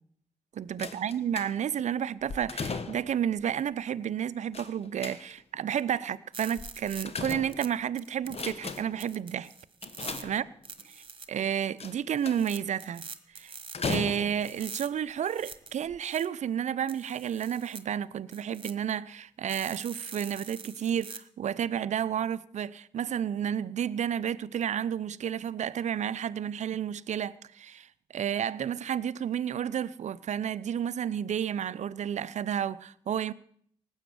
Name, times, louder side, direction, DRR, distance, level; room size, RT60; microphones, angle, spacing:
voice 1, 0.5-9.5 10.2-10.5 10.9-11.0 11.3-13.0 13.3-13.5 13.8-33.3, right 9 dB, 60° right, 0.6 m, -31 dB
sound 1, 0.8-1.8 2.3-3.2 4.5-5.6 6.6-7.9 8.3-9.1 9.8-10.8 11.8-12.6 13.7-14.6 15.4-15.5 15.9-16.0, left 4 dB, 50° left, 1.3 m, -37 dB
sound 2, 5.8-5.9 6.3-7.7 8.0-10.2 10.6-11.3 11.8-11.9 12.2-14.0 14.4-16.3 16.9-17.8 18.3-18.7 19.5-21.2, right 5 dB, 40° right, 1.5 m, -44 dB
18.5 x 8.1 x 6.8 m
hypercardioid pair, 40°, 13 cm